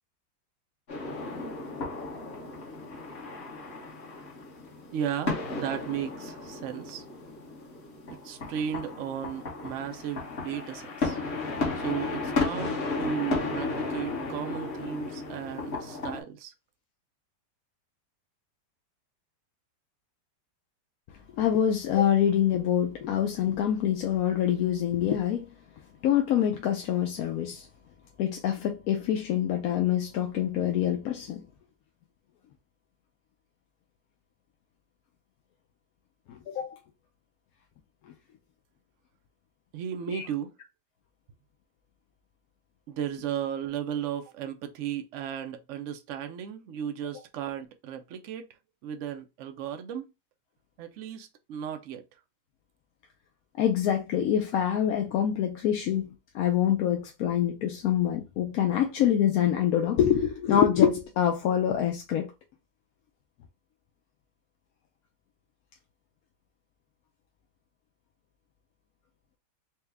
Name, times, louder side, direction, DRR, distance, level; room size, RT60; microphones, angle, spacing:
sound 1, 0.9-16.2, left 3 dB, 40° left, 1.4 m, -34 dB
voice 1, 4.9-7.0 8.2-11.2 11.7-16.5 39.7-40.5 42.9-48.5 48.8-50.1 50.8-52.0, right 9 dB, 85° right, 0.6 m, -35 dB
voice 2, 21.3-25.5 26.0-27.7 28.2-31.5 36.3-36.8 40.1-40.2 53.6-56.1 56.3-62.3, left 10 dB, 70° left, 0.9 m, -25 dB
4.5 x 2.2 x 3.4 m
omnidirectional pair, 1.9 m